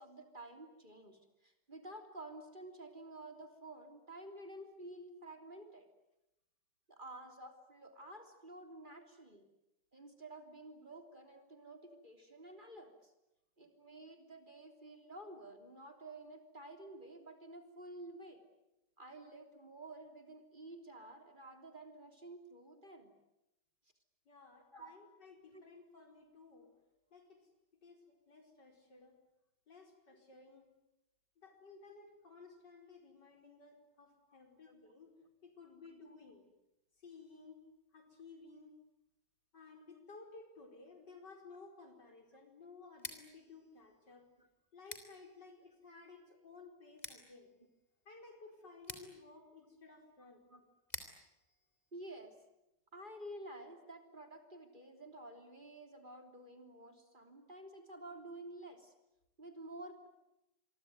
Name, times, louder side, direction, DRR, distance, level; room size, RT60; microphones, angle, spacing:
voice 1, 0.0-5.9 6.9-9.5 9.9-13.1 13.6-18.5 19.0-23.1 24.7-24.9 25.5-25.6 34.7-34.8 44.4-44.5 50.5-50.6 51.9-52.3 52.9-58.9 59.4-60.1, right 1 dB, 25° right, 6 dB, 3.5 m, -51 dB
voice 2, 24.3-26.8 27.1-27.4 27.8-29.2 29.7-30.7 31.4-35.1 35.4-36.5 37.0-37.6 37.9-38.8 39.5-44.3 44.7-47.5 48.1-50.4, left 4 dB, 85° left, 4 dB, 5.5 m, -56 dB
Scissors, 42.9-52.7, left 1 dB, 25° left, 3.6 m, -54 dB
26.5 x 23.5 x 9.4 m, 0.89 s
omnidirectional pair, 1.8 m